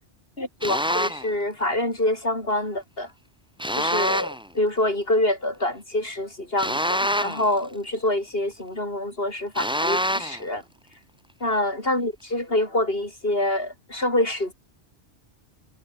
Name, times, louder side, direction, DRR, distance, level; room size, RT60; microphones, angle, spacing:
voice 1, 0.4-3.1 3.7-10.6 11.4-14.5, left 1 dB, 55° left, 6.8 m, -26 dB
sound 1, 0.6-1.3 3.6-4.5 6.6-7.6 9.6-10.4, equal, 5° right, 4.3 m, -26 dB
omnidirectional pair, 1.2 m